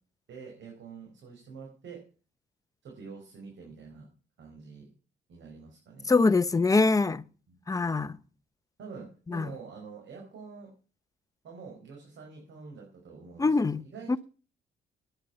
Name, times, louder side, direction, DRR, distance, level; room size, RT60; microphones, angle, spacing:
voice 1, 0.3-2.0 2.8-4.1 4.4-4.9 5.3-6.1 7.5-7.6 8.8-10.7 11.4-14.2, right 5 dB, 70° right, 5.4 m, -46 dB
voice 2, 6.1-7.2 7.7-8.2 9.3-9.5 13.4-13.8 14.1-14.2, left 3 dB, 15° left, 0.7 m, -24 dB
10.5 x 9.0 x 8.7 m
cardioid pair, 90°, 20 cm